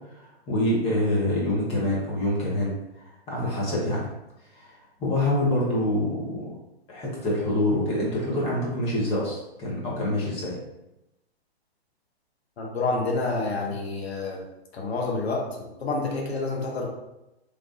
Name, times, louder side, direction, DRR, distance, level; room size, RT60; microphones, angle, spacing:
voice 1, 0.1-4.1 4.6-6.5 6.9-10.6, left 1 dB, 20° left, -5 dB, 1.0 m, -26 dB
voice 2, 12.6-14.4 14.7-16.9, left 3 dB, 75° left, -1 dB, 1.0 m, -28 dB
3.3 x 3.3 x 2.6 m, 0.92 s
hypercardioid pair, 125°, 32 cm